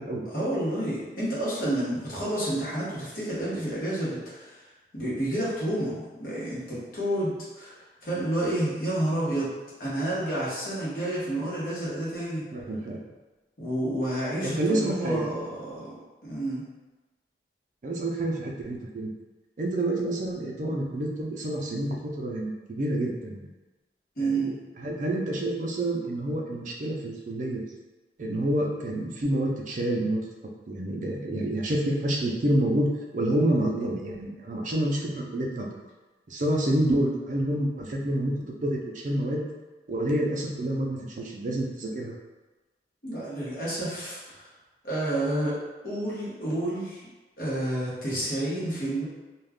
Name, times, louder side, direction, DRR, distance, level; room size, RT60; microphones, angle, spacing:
voice 1, 0.2-4.6 4.9-9.5 9.8-12.5 13.6-15.9 16.2-16.6 24.2-24.5 43.0-44.5 44.8-45.6 45.8-47.1 47.4-49.0, right 1 dB, 55° left, -8 dB, 1.0 m, -30 dB
voice 2, 12.5-13.0 14.4-15.2 17.8-19.1 19.6-23.4 24.2-27.6 28.2-30.2 30.7-32.9 33.1-35.7 36.3-39.4 39.9-42.1, right 1 dB, 45° right, 0 dB, 0.4 m, -28 dB
2.3 x 2.3 x 3.4 m, 1.2 s
head